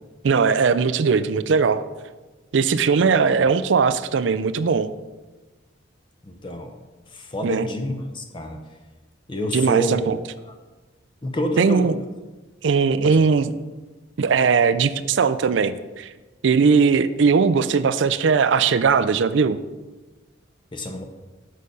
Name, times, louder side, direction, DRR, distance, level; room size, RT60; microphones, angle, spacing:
voice 1, 0.2-1.9 2.5-4.9 7.4-7.7 9.5-10.2 11.6-12.0 12.6-13.5 14.2-16.1 16.4-19.6, right 5 dB, 70° right, 14 dB, 0.4 m, -19 dB
voice 2, 6.2-6.7 7.1-8.6 9.3-10.0 10.5-10.6 11.2-11.9 13.0-13.2 20.7-21.0, left 1 dB, 25° left, 4 dB, 0.7 m, -28 dB
6.5 x 6.3 x 5.4 m, 1.2 s
head